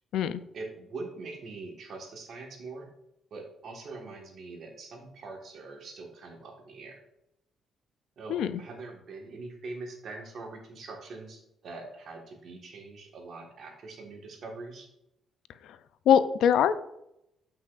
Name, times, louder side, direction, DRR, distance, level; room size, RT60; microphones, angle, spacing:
voice 1, 0.5-2.9 3.3-7.0 8.2-14.9, right 3 dB, 60° right, 2 dB, 1.6 m, -43 dB
voice 2, 8.3-8.6 16.1-16.7, left 8 dB, 80° left, 13 dB, 0.4 m, -22 dB
8.2 x 5.6 x 2.5 m, 0.82 s
cardioid pair, 90°, 0 cm